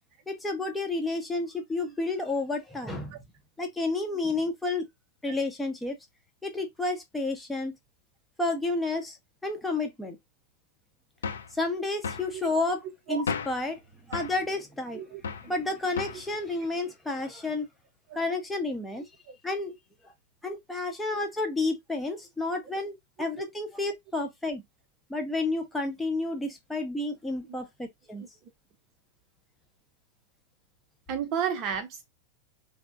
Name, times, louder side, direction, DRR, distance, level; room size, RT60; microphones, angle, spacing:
voice 1, 0.3-3.2 3.6-4.9 5.2-6.0 6.4-7.7 8.4-9.2 9.4-10.2 11.6-13.8 14.1-15.0 15.4-17.7 18.1-19.0 19.4-19.8 20.4-24.6 25.1-28.3, left 2 dB, 5° left, 0.8 m, -31 dB
sound 1, 11.2-11.5 12.0-12.3 13.3-13.6 14.1-14.4 15.2-15.5 16.0-16.3, left 5 dB, 70° left, 0.4 m, -33 dB
voice 2, 14.9-15.6 19.3-19.4 23.4-23.5 28.2-28.3 31.1-32.1, right 8 dB, 40° right, 0.5 m, -33 dB
3.3 x 2.0 x 2.3 m
figure-of-eight pair, 90°, 0 cm